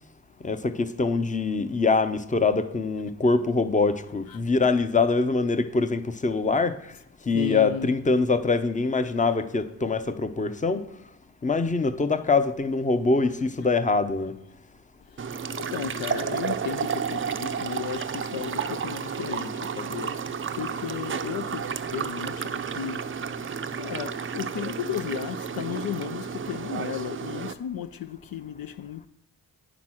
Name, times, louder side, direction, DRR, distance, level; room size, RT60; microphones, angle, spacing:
voice 1, 0.4-6.8 7.3-10.8 11.4-14.3, left 3 dB, 20° left, 0.7 m, -24 dB
voice 2, 7.3-7.9 15.1-15.2 15.5-20.2 20.6-23.1 23.8-29.1, left 10 dB, 65° left, 0.5 m, -34 dB
sound 1, 15.2-27.5, right 6 dB, 35° right, 0.5 m, -32 dB
9.5 x 6.1 x 6.1 m
cardioid pair, 75°, 38 cm